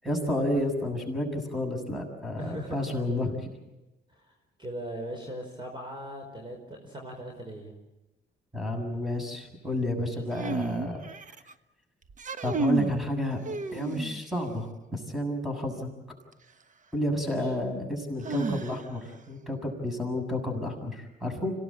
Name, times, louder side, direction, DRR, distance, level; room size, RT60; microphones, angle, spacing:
voice 1, 0.0-3.3 8.5-11.0 12.4-13.4 13.7-15.9 16.9-21.5, left 1 dB, ahead, 4 dB, 7.1 m, -30 dB
voice 2, 2.4-3.0 4.1-7.7 17.2-17.5, right 1 dB, 25° right, 2 dB, 5.0 m, -40 dB
sound 1, 10.3-11.5 12.1-13.0 13.4-14.4 16.3-16.4 18.2-19.1, right 4 dB, 40° right, 1.2 m, -32 dB
26.5 x 17.5 x 8.8 m, 0.99 s
cardioid pair, 90°, 20 cm